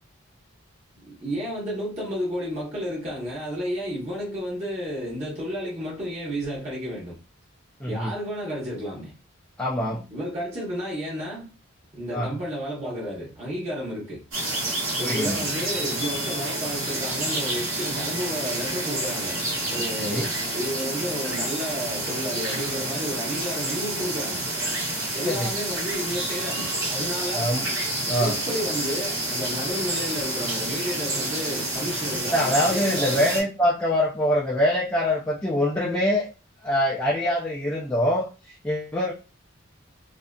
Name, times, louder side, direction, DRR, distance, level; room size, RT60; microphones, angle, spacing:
voice 1, 1.1-7.2 7.9-9.1 10.1-11.5 11.9-14.2 15.0-19.4 19.7-24.4 25.1-27.5 28.2-33.3, equal, 30° right, 0.8 m, -32 dB
voice 2, 7.8-8.1 9.6-10.1 12.1-12.4 15.0-15.5 20.0-20.2 25.2-25.5 27.3-27.7 28.1-28.4 32.3-36.3 36.6-39.1, left 1 dB, 10° left, 0.4 m, -24 dB
sound 1, 14.3-33.4, right 1 dB, 70° right, 1.1 m, -29 dB
2.6 x 2.4 x 2.2 m
head